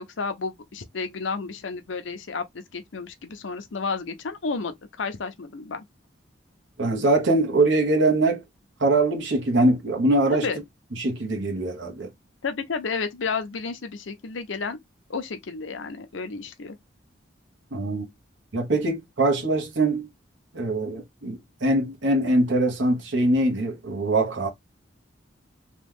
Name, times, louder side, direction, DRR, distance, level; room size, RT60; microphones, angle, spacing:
voice 1, 0.0-2.4 2.7-5.8 10.4-10.6 12.4-14.8 15.1-16.8, left 4 dB, 80° left, 0.6 m, -31 dB
voice 2, 6.8-8.4 8.8-10.5 11.0-12.1 17.7-18.0 18.5-20.1 20.5-24.5, right 2 dB, 75° right, 1.0 m, -22 dB
3.0 x 2.3 x 3.4 m
head